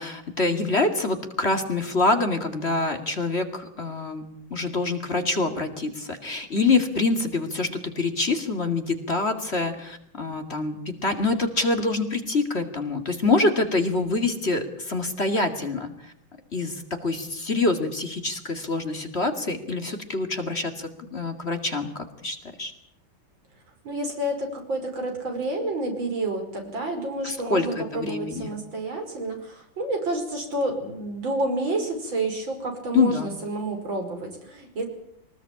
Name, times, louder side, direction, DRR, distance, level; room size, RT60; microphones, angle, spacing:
voice 1, 0.0-16.1 16.5-22.7 27.2-28.5 32.9-33.3, left 3 dB, 35° left, 6 dB, 2.4 m, -26 dB
voice 2, 23.8-34.9, right 2 dB, 80° right, 3 dB, 6.0 m, -29 dB
23.5 x 20.0 x 8.7 m, 0.71 s
omnidirectional pair, 2.1 m